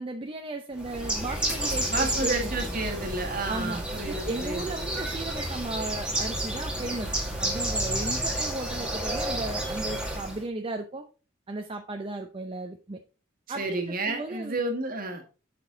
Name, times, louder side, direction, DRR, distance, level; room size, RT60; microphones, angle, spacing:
voice 1, 0.0-2.8 3.5-7.1 7.4-11.0 11.5-13.0 13.5-14.6, right 2 dB, 25° right, 5 dB, 0.5 m, -35 dB
Bird, 0.8-10.4, right 1 dB, 5° right, 1.9 m, -31 dB
voice 2, 1.9-4.6 13.5-15.2, right 2 dB, 45° right, 4 dB, 1.6 m, -31 dB
7.0 x 6.0 x 3.9 m, 0.34 s
head